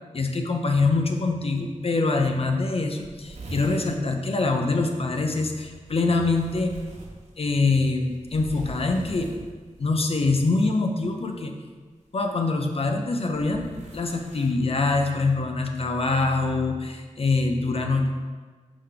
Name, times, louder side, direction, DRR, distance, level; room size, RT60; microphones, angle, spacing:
voice 1, 0.1-6.7 7.4-9.3 9.8-11.5 12.1-18.1, left 3 dB, 50° left, 3 dB, 0.6 m, -24 dB
sound 1, 1.6-1.7 2.0-2.1 2.3-2.4 2.6-4.0 5.5-9.9 11.1-11.4 12.3-14.5, right 2 dB, 60° right, 1.6 m, -42 dB
4.9 x 4.0 x 5.6 m, 1.4 s
wide cardioid pair, 120°, 13 cm